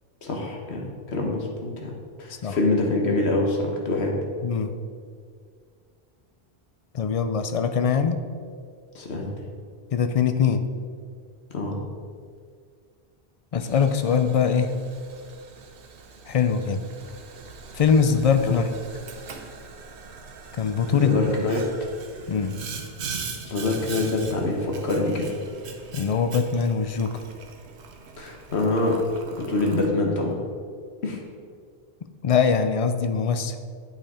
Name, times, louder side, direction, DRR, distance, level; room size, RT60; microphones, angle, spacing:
voice 1, 0.2-1.9 2.2-4.1 8.9-9.3 11.5-11.8 18.4-18.6 20.6-21.6 23.4-25.3 28.2-28.9 29.4-30.4 31.0-31.2, left 2 dB, 80° left, 0 dB, 1.5 m, -25 dB
voice 2, 6.9-8.2 9.9-10.6 13.5-14.7 16.3-16.8 17.7-18.6 20.6-21.3 22.3-22.6 25.9-27.2 32.2-33.6, left 6 dB, 50° left, 8 dB, 0.4 m, -22 dB
Boiling, 13.6-29.9, right 5 dB, 85° right, 1.1 m, -41 dB
8.8 x 5.7 x 4.3 m, 2.1 s
omnidirectional pair, 1.1 m